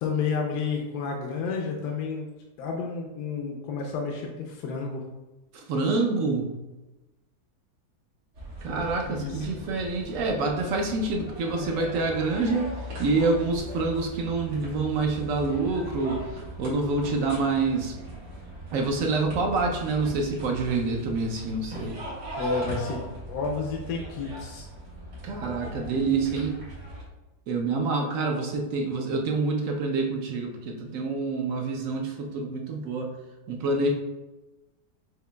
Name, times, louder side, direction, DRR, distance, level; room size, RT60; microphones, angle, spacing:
voice 1, 0.0-2.3 2.6-5.1 9.1-9.5 22.3-23.0 23.3-24.6, left 5 dB, 75° left, 0 dB, 1.1 m, -30 dB
voice 2, 5.5-6.6 8.6-17.9 18.7-22.0 25.2-26.6 27.5-33.2 33.5-33.9, right 3 dB, 70° right, 1 dB, 0.8 m, -27 dB
sound 1, 8.3-27.0, right 1 dB, 85° right, 1.9 m, -39 dB
sound 2, 12.8-13.7 14.8-15.2 15.6-16.2 17.0-17.1 18.6-19.9 20.9-22.0, right 1 dB, 10° right, 0.4 m, -49 dB
5.8 x 3.0 x 2.2 m, 1.1 s
omnidirectional pair, 1.8 m